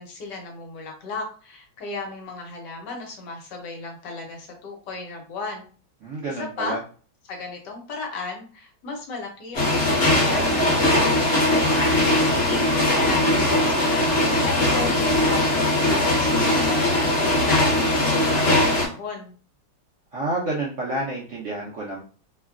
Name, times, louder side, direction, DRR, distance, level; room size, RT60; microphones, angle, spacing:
voice 1, 0.0-5.7 6.3-6.8 7.3-14.9 15.2-19.3, left 3 dB, 70° left, 1 dB, 1.2 m, -35 dB
voice 2, 6.0-6.8 20.1-22.0, right 2 dB, 85° right, -5 dB, 0.6 m, -29 dB
sound 1, 9.5-18.9, left 1 dB, 45° left, 1.0 m, -20 dB
3.1 x 2.2 x 2.3 m, 0.40 s
omnidirectional pair, 2.1 m